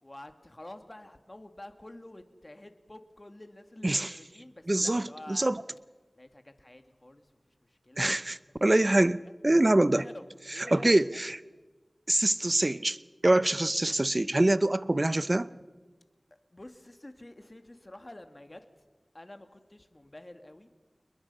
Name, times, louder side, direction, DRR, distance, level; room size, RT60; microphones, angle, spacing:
voice 1, 0.0-5.5 6.2-7.3 7.7-8.2 9.9-11.2 12.1-12.2 16.5-18.6 19.1-20.7, left 1 dB, 35° left, 8 dB, 2.1 m, -49 dB
voice 2, 4.7-5.6 8.0-9.2 9.4-10.1 10.6-11.4 12.1-13.0 13.2-15.5, right 1 dB, 40° right, 16 dB, 0.7 m, -25 dB
29.5 x 21.0 x 5.6 m, 1.3 s
wide cardioid pair, 50°, 0 cm